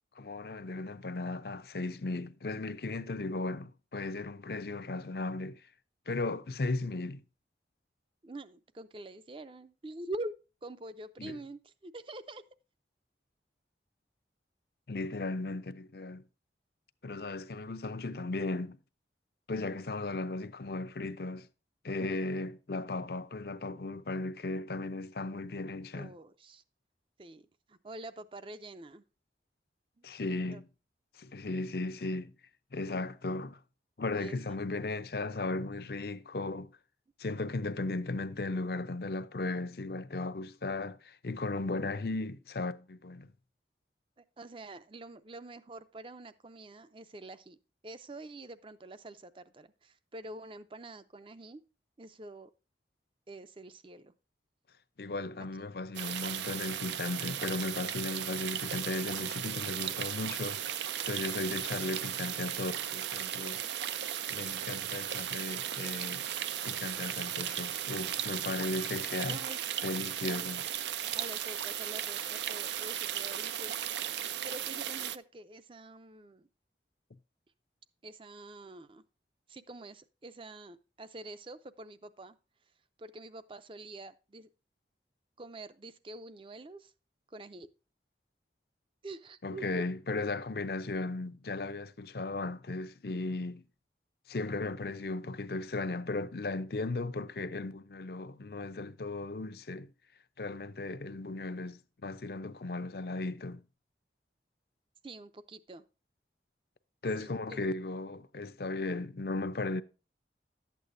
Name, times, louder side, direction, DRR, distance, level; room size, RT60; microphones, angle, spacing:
voice 1, 0.2-5.6 6.1-7.2 11.2-11.4 14.9-16.2 17.0-18.8 19.5-21.5 21.8-26.1 30.0-30.7 31.2-32.3 32.7-33.6 34.0-36.7 37.2-43.3 55.0-63.6 64.3-66.2 66.6-69.4 69.8-70.6 89.4-93.6 94.3-99.9 100.4-103.6 107.0-109.8, left 2 dB, 60° left, 0.6 m, -36 dB
voice 2, 8.2-10.3 10.6-12.4 26.0-26.6 27.2-29.0 30.0-30.1 30.5-30.6 34.2-34.3 44.2-47.6 47.8-51.6 52.0-52.5 53.3-54.1 69.3-69.6 70.2-70.5 71.1-73.8 74.4-76.5 78.0-79.0 79.5-82.4 83.0-84.5 85.4-86.9 87.3-87.7 89.0-89.6 105.0-105.8 107.2-107.6, right 2 dB, 30° right, 0.5 m, -46 dB
sound 1, 55.9-75.2, right 10 dB, 80° right, 0.5 m, -36 dB
12.0 x 8.3 x 2.6 m
head